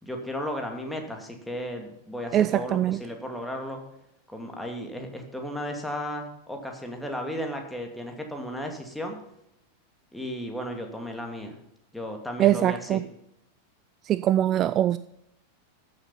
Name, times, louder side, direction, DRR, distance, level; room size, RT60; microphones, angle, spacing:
voice 1, 0.0-3.8 4.3-9.2 10.1-11.5 11.9-13.0, equal, ahead, 2 dB, 2.4 m, -34 dB
voice 2, 2.3-3.0 12.4-13.0 14.0-15.0, right 12 dB, 30° right, 16 dB, 0.4 m, -22 dB
14.0 x 7.6 x 5.5 m, 0.80 s
figure-of-eight pair, 90°, 0 cm